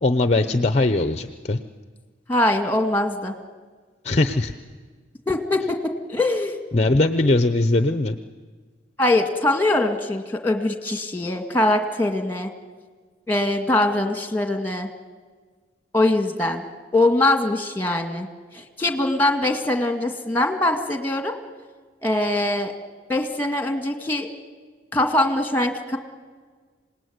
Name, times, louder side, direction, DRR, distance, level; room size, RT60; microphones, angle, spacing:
voice 1, 0.0-1.6 4.0-4.5 6.7-8.2, left 2 dB, 35° left, 9 dB, 0.8 m, -20 dB
voice 2, 2.3-3.4 5.3-6.6 7.1-7.3 9.0-12.5 13.3-14.9 15.9-16.6 16.9-18.3 18.5-21.4 22.0-22.7 23.1-24.3 24.9-26.0, left 1 dB, 10° left, 5 dB, 2.1 m, -22 dB
26.5 x 19.0 x 9.5 m, 1.5 s
head